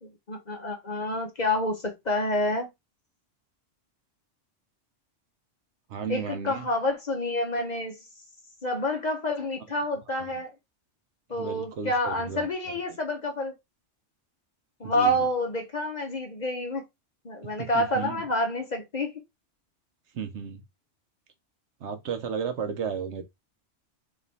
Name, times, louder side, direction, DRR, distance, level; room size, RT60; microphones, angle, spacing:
voice 1, 0.0-2.7 6.1-8.0 8.6-10.5 11.3-13.5 14.8-16.8 17.2-19.1, left 1 dB, 40° left, 0.8 m, -28 dB
voice 2, 5.9-6.7 10.2-10.3 11.4-12.5 14.8-15.2 17.6-18.2 20.1-20.6 21.8-23.2, right 6 dB, 70° right, 1.0 m, -34 dB
3.0 x 2.9 x 4.0 m
omnidirectional pair, 1.3 m